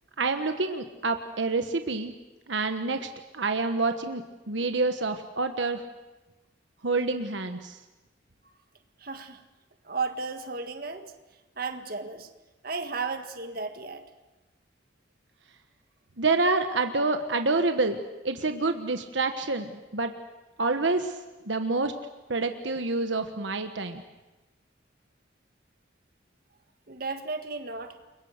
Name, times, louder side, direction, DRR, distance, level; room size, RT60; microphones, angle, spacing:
voice 1, 0.2-2.1 2.5-3.1 3.3-5.8 6.8-7.8 16.2-20.1 20.6-21.2 21.4-21.9 22.3-24.0, right 3 dB, 80° right, 7 dB, 1.3 m, -27 dB
voice 2, 9.0-9.4 9.8-11.1 11.6-12.3 12.6-14.0 26.9-27.9, right 4 dB, 50° right, 7 dB, 1.8 m, -34 dB
29.5 x 23.0 x 6.6 m, 1.1 s
head